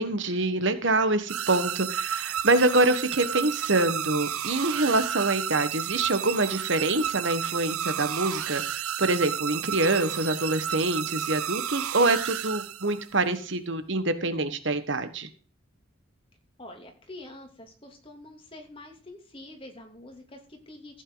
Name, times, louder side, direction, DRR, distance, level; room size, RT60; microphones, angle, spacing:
voice 1, 0.0-15.3, right 2 dB, 55° right, 11 dB, 1.4 m, -25 dB
sound 1, 1.3-13.2, right 10 dB, 85° right, 0.7 m, -32 dB
voice 2, 16.6-21.0, left 1 dB, 25° left, 3 dB, 2.9 m, -46 dB
15.0 x 9.1 x 4.0 m, 0.40 s
head